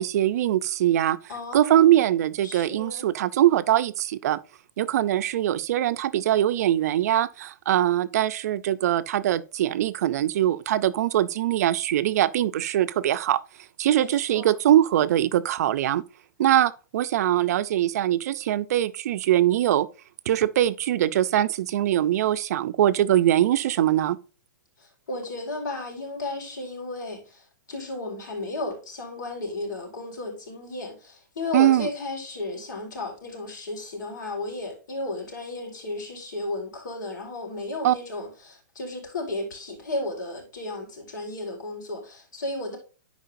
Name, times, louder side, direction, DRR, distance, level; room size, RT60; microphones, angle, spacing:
voice 1, 0.0-1.2 1.5-4.4 4.8-13.4 13.8-16.0 16.4-19.9 20.3-24.2 31.5-31.9 37.8-38.0, right 12 dB, 55° right, 0.6 m, -22 dB
voice 2, 1.3-2.0 2.4-3.0 13.9-14.6 24.8-42.8, left 2 dB, 80° left, 4.6 m, -34 dB
11.5 x 4.9 x 2.6 m
hypercardioid pair, 160°, 10 cm